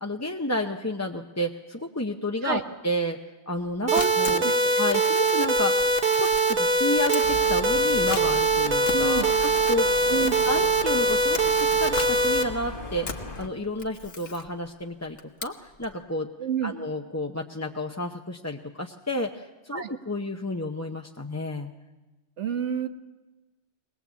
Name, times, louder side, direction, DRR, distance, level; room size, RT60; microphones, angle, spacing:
voice 1, 0.0-3.2 3.5-4.4 4.8-5.8 6.2-9.9 10.4-16.3 16.6-21.8, left 1 dB, 15° left, 2 dB, 0.8 m, -31 dB
Camera, 3.6-16.0, left 4 dB, 90° left, 1.8 m, -39 dB
sound 1, 3.9-12.4, right 2 dB, 50° right, 1.7 m, -22 dB
voice 2, 3.9-4.5 8.9-9.3 10.1-10.3 16.4-16.7 19.7-19.9 22.4-22.9, right 7 dB, 85° right, 8 dB, 1.6 m, -28 dB
sound 2, 7.2-13.5, left 2 dB, 50° left, 1.8 m, -38 dB
22.0 x 19.5 x 8.2 m, 1.1 s
omnidirectional pair, 1.2 m